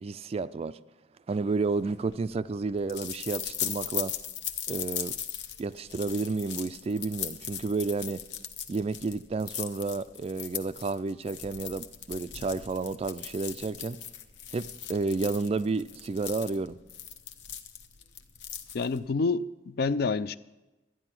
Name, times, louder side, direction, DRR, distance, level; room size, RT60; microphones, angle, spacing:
voice 1, 0.0-0.8 1.3-4.1 4.7-5.1 5.6-8.2 8.7-14.0 14.5-16.8, right 3 dB, 35° right, 0.3 m, -31 dB
sound 1, 1.7-19.1, left 9 dB, 70° left, 0.8 m, -39 dB
voice 2, 18.7-20.4, left 4 dB, 55° left, 0.4 m, -28 dB
13.0 x 9.7 x 5.9 m
head